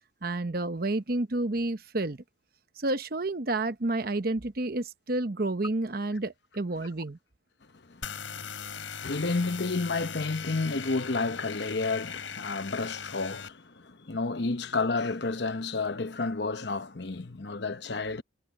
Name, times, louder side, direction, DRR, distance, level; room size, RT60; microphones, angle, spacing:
voice 1, 0.2-2.2 2.8-7.2, right 2 dB, 50° right, 0.9 m, -30 dB
voice 2, 7.9-18.2, left 3 dB, 60° left, 1.0 m, -31 dB
sound 1, 8.0-13.5, left 6 dB, 90° left, 6.3 m, -39 dB
head